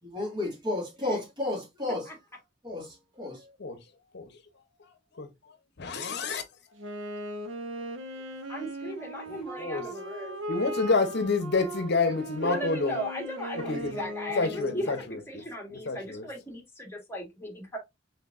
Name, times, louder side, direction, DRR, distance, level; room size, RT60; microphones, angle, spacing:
voice 1, 0.0-2.1 2.6-3.8 9.8-9.9 10.5-11.1 11.6-11.7 12.0-12.2 12.5-12.9 13.7-13.8, left 2 dB, 25° right, 1.8 m, -34 dB
voice 2, 5.8-6.4 9.3-9.8 10.5-13.0 13.7-14.0 14.4-15.4 15.9-16.3, left 3 dB, 60° left, 0.8 m, -28 dB
Wind instrument woodwind instrument, 6.8-15.1, right 1 dB, 85° right, 1.0 m, -38 dB
voice 3, 8.5-10.4 12.4-17.8, left 1 dB, 15° left, 1.5 m, -37 dB
4.4 x 3.4 x 2.5 m
head